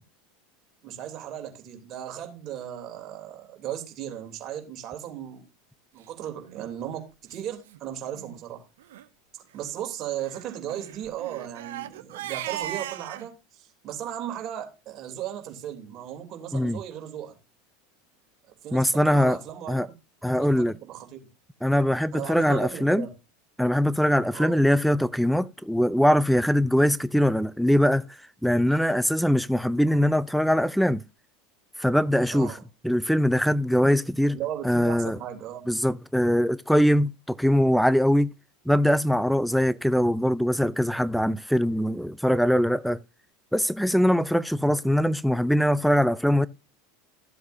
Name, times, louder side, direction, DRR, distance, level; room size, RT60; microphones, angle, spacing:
voice 1, 0.8-5.4 5.9-8.7 9.3-17.3 18.6-19.9 20.3-21.3 22.1-23.1 24.3-24.5 32.3-32.6 34.3-35.6, right 10 dB, 45° right, 3.1 m, -36 dB
Crying sobbing, 6.4-6.6 7.3-7.4 7.7-7.8 8.1-8.4 8.8-9.0 10.2-13.3, right 13 dB, 70° right, 0.9 m, -37 dB
voice 2, 18.7-19.4 19.7-19.9 20.2-20.7 21.6-23.1 23.6-28.0 28.4-31.0 31.8-32.6 32.8-34.4 34.6-35.2 35.7-38.3 38.7-43.0 43.5-46.5, equal, ahead, 0.5 m, -22 dB
14.0 x 7.8 x 2.7 m
hypercardioid pair, 85°, 0 cm